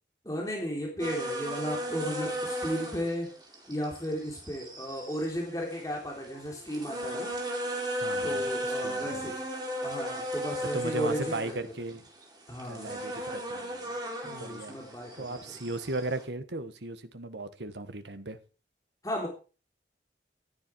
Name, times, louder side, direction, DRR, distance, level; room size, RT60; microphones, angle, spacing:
voice 1, 0.2-3.3 3.7-7.3 8.2-9.4 9.8-11.6 12.5-12.9 14.2-15.4 19.0-19.3, equal, 20° left, 3.4 m, -34 dB
sound 1, 1.0-16.2, equal, 25° right, 4.2 m, -36 dB
voice 2, 8.0-8.4 8.8-9.3 10.7-12.0 12.7-14.0 14.2-14.8 15.2-18.4, right 2 dB, 85° right, 1.5 m, -37 dB
14.5 x 11.5 x 4.7 m
head